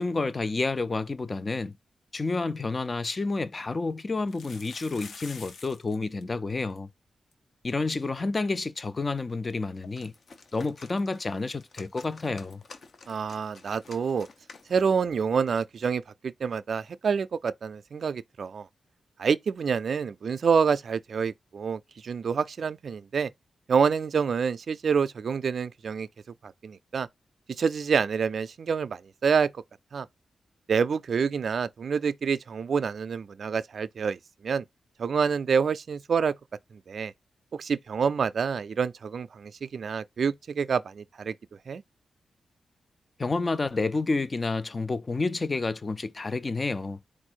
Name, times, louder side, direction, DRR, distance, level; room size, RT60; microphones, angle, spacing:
voice 1, 0.0-1.7 2.1-6.9 7.6-10.1 10.5-12.6 43.2-47.0, left 3 dB, 30° left, 0.4 m, -29 dB
sound 1, 2.6-2.7 3.0-3.1 4.2-6.0 6.2-6.3 6.5-6.8 7.3-7.4 7.7-7.8 9.8-9.9, left 5 dB, 80° left, 1.0 m, -46 dB
sound 2, 9.7-15.0, left 4 dB, 55° left, 0.8 m, -51 dB
voice 2, 13.1-14.3 14.7-18.7 19.2-23.3 23.7-26.1 26.4-27.1 27.6-29.6 29.9-30.1 30.7-34.6 35.0-36.3 36.7-37.1 37.5-41.3 41.7-41.8, right 6 dB, 60° right, 0.3 m, -27 dB
4.5 x 2.5 x 4.4 m
wide cardioid pair, 120°, 0 cm